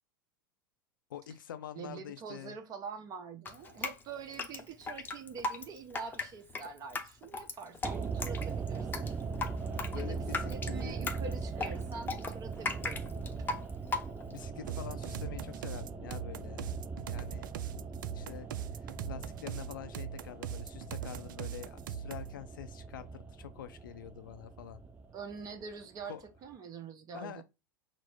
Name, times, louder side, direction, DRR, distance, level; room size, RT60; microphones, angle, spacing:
voice 1, 1.1-2.6 9.9-11.1 14.3-16.8 17.1-17.8 18.1-18.5 18.8-24.8 26.1-26.2 27.1-27.4, left 10 dB, 75° left, 0.6 m, -46 dB
voice 2, 1.7-9.2 9.9-13.6 25.1-27.4, right 5 dB, 35° right, 0.9 m, -45 dB
Drip, 3.5-14.4, left 3 dB, 15° left, 0.8 m, -38 dB
sound 1, 7.8-26.0 26.3-26.4, right 4 dB, 15° right, 0.5 m, -40 dB
sound 2, 14.7-22.3, right 9 dB, 70° right, 0.4 m, -40 dB
4.2 x 2.1 x 4.5 m
hypercardioid pair, 90°, 11 cm